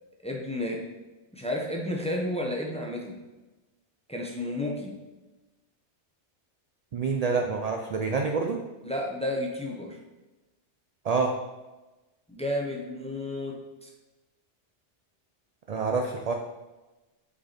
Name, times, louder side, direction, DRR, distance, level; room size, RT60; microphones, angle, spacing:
voice 1, 0.2-0.8 1.3-3.2 4.1-4.9 8.8-10.0 12.3-13.9, left 1 dB, 5° left, 0 dB, 0.6 m, -32 dB
voice 2, 6.9-8.6 11.0-11.3 15.7-16.3, right 4 dB, 60° right, 3 dB, 0.4 m, -27 dB
5.3 x 4.5 x 4.3 m, 1.1 s
omnidirectional pair, 1.2 m